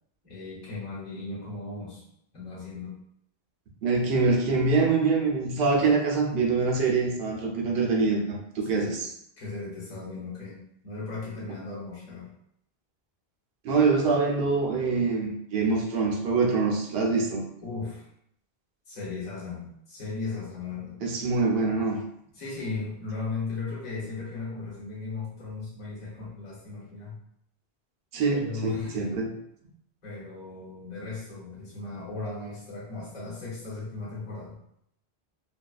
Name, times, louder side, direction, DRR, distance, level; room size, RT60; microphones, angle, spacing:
voice 1, 0.2-2.0 2.3-2.9 8.8-9.0 9.4-12.3 17.6-18.1 18.9-21.0 22.3-27.2 28.3-29.1 30.0-34.6, left 3 dB, 45° left, -8 dB, 1.1 m, -36 dB
voice 2, 3.8-9.1 13.6-17.4 21.0-22.0 28.1-29.3, right 4 dB, 75° right, 0 dB, 0.8 m, -24 dB
2.6 x 2.3 x 2.3 m, 0.73 s
omnidirectional pair, 1.0 m